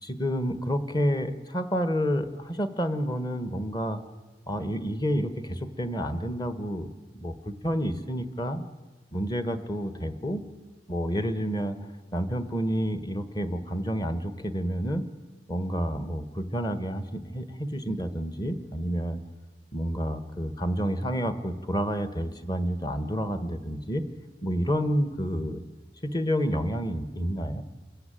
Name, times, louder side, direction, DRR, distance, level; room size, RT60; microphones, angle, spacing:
voice 1, 0.0-4.0 4.5-6.9 7.1-8.6 9.1-10.4 10.9-11.8 12.1-15.1 15.5-19.2 19.7-24.0 24.4-25.6 26.0-27.6, equal, 25° left, 10 dB, 1.4 m, -29 dB
27.5 x 15.5 x 9.1 m, 1.3 s
head